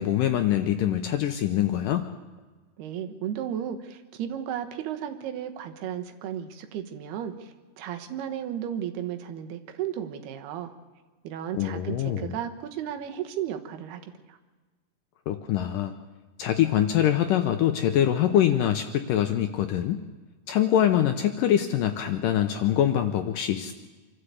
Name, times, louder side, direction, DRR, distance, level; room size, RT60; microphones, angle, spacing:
voice 1, 0.0-2.1 11.5-12.3 15.3-16.0 16.4-20.0 20.5-23.7, left 11 dB, 75° left, 7 dB, 2.1 m, -24 dB
voice 2, 2.8-10.7 11.2-14.0 14.3-14.4, right 10 dB, 80° right, 7 dB, 3.2 m, -34 dB
25.5 x 13.0 x 8.3 m, 1.3 s
omnidirectional pair, 4.5 m